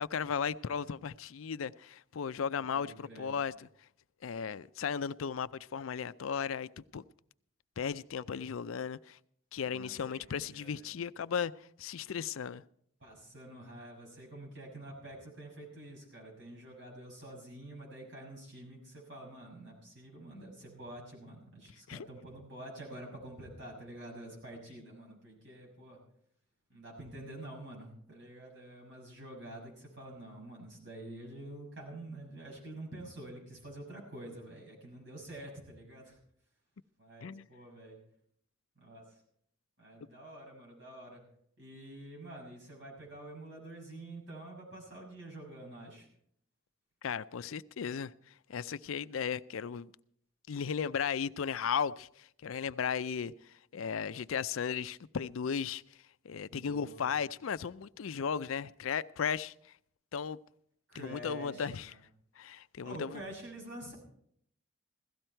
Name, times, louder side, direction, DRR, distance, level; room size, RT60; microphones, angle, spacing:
voice 1, 0.0-3.7 4.2-7.0 7.8-9.2 9.5-12.6 21.9-22.1 37.2-37.5 47.0-49.9 50.5-55.8 56.2-59.7 60.1-60.4 60.9-61.9 62.4-63.2, left 7 dB, 85° left, 0.5 m, -36 dB
voice 2, 2.7-3.4 9.6-10.9 13.0-26.0 26.7-36.2 37.0-38.0 38.8-39.0 39.8-41.2 41.6-46.1 56.5-57.2 60.9-61.9 62.8-63.9, right 1 dB, 60° right, 6.3 m, -48 dB
16.5 x 14.0 x 4.5 m
head